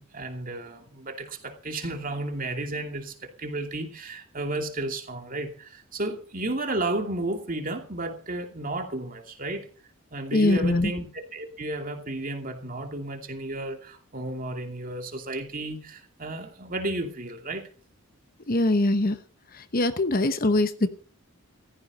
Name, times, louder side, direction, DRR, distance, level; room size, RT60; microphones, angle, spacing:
voice 1, 0.0-9.7 10.1-17.7, right 2 dB, 40° right, 4 dB, 2.6 m, -33 dB
voice 2, 10.3-10.9 18.5-19.2 19.5-20.9, left 2 dB, 40° left, 11 dB, 0.9 m, -23 dB
16.0 x 14.5 x 4.2 m, 0.39 s
head